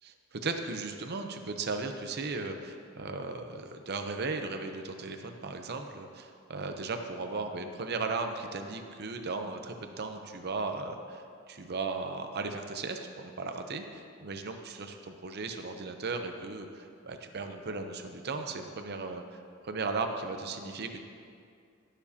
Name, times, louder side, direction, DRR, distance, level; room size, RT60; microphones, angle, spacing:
voice 1, 0.0-21.0, right 3 dB, 50° right, 6 dB, 0.7 m, -36 dB
17.0 x 7.2 x 2.8 m, 2.3 s
head